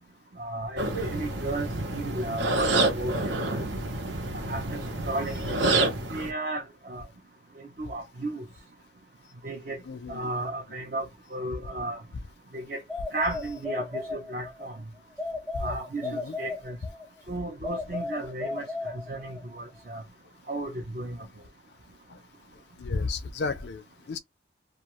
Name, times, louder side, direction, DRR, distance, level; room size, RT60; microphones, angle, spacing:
voice 1, 0.4-3.6 4.3-5.8 6.1-7.0 7.6-8.4 9.4-9.8 10.1-12.0 12.5-12.8 13.1-14.8 15.6-16.1 16.4-16.8 17.3-20.0 20.5-21.2, right 2 dB, 50° right, 0.6 m, -34 dB
sound 1, 0.8-6.3, right 2 dB, 85° right, 0.9 m, -28 dB
voice 2, 1.0-1.3 9.9-10.3 15.5-15.6 16.0-16.3 22.1-22.2 22.5-24.2, left 4 dB, 65° left, 0.4 m, -34 dB
sound 2, 12.9-14.7 15.2-17.1 17.6-19.5, left 3 dB, 5° right, 0.5 m, -35 dB
2.4 x 2.3 x 2.9 m
head